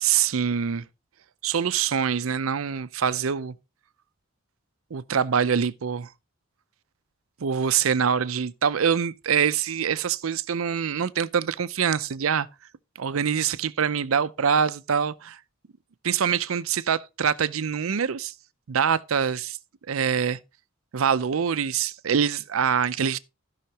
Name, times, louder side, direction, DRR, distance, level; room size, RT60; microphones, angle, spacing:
voice 1, 0.0-0.8 1.4-3.5 4.9-6.1 7.4-12.5 13.0-15.4 16.0-18.3 18.7-19.6 19.9-20.4 20.9-23.2, right 7 dB, 80° right, 0.5 m, -24 dB
16.0 x 5.7 x 2.9 m
head